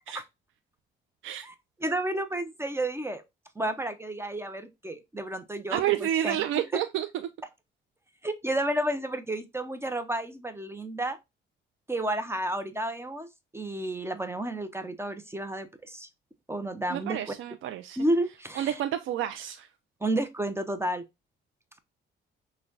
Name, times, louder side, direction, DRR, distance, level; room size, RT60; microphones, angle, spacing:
voice 1, 1.8-3.2 3.6-6.4 6.7-6.8 8.2-11.2 11.9-16.1 16.5-17.3 18.0-18.8 20.0-21.0, right 1 dB, 10° right, 0.6 m, -31 dB
voice 2, 5.7-7.1 16.9-18.0 18.6-19.7, right 12 dB, 80° right, 0.4 m, -29 dB
6.0 x 2.2 x 3.9 m
cardioid pair, 90°, 20 cm